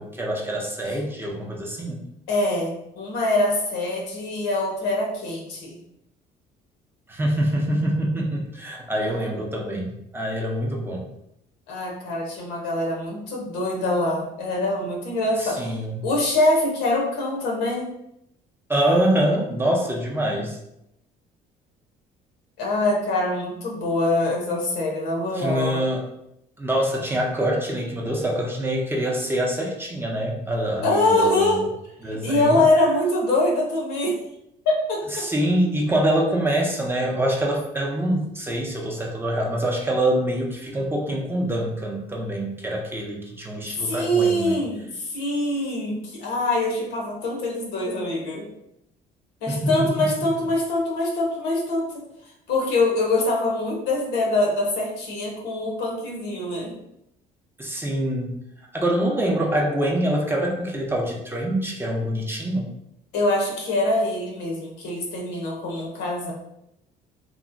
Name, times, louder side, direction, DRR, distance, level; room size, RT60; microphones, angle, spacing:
voice 1, 0.0-2.0 7.1-11.1 15.4-16.1 18.7-20.6 25.3-26.1 26.6-31.7 32.0-32.6 35.1-44.6 49.5-50.1 57.6-58.4 58.7-62.7, right 1 dB, 15° right, -1 dB, 0.5 m, -25 dB
voice 2, 2.3-5.8 9.0-9.4 11.7-15.7 16.0-17.9 22.6-25.8 30.8-31.6 32.0-34.2 34.6-35.3 43.7-48.5 49.4-51.9 52.5-56.8 63.1-66.3, left 2 dB, 85° left, -1 dB, 0.8 m, -24 dB
2.9 x 2.1 x 2.5 m, 0.81 s
cardioid pair, 110°, 17 cm